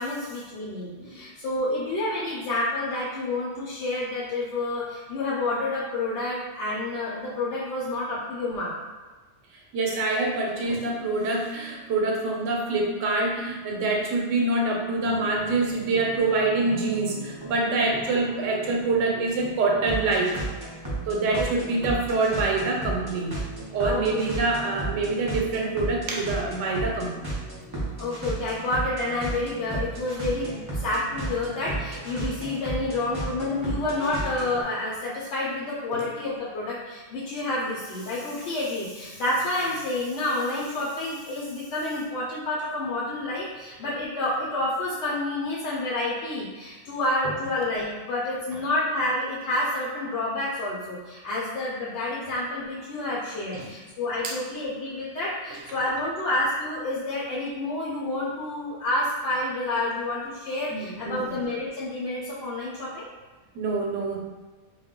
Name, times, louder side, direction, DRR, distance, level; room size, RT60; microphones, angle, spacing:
voice 1, 0.0-8.7 21.3-21.5 21.8-21.9 23.8-24.2 28.0-63.1, left 2 dB, 70° left, -6 dB, 0.8 m, -29 dB
voice 2, 9.7-20.4 21.1-23.3 23.7-27.3 53.5-53.7 54.2-54.3 60.7-61.4 63.5-64.2, right 3 dB, 85° right, 0 dB, 0.9 m, -25 dB
sound 1, 15.0-34.6, right 2 dB, 30° right, 0.4 m, -35 dB
2.3 x 2.0 x 3.6 m, 1.3 s
omnidirectional pair, 1.2 m